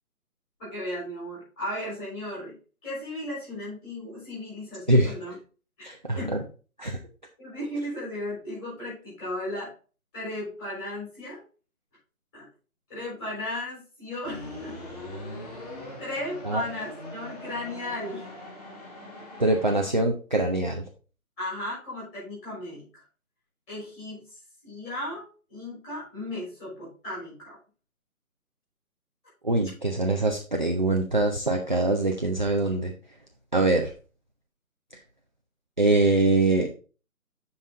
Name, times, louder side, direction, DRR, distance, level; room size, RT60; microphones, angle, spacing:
voice 1, 0.6-2.5 2.8-5.3 5.8-6.4 7.4-9.7 10.1-11.4 12.3-12.5 12.9-14.8 16.0-18.2 21.4-23.0 23.7-25.2 25.5-27.6, left 1 dB, 10° left, -8 dB, 4.1 m, -35 dB
voice 2, 5.8-6.4 6.8-7.0 16.4-16.6 19.4-20.8 29.4-32.9 33.5-33.9 35.8-36.7, right 2 dB, 35° right, 2 dB, 0.6 m, -23 dB
sound 1, 14.2-19.9, left 1 dB, 25° left, 1.8 m, -41 dB
7.5 x 5.5 x 3.8 m, 0.36 s
hypercardioid pair, 170°, 44 cm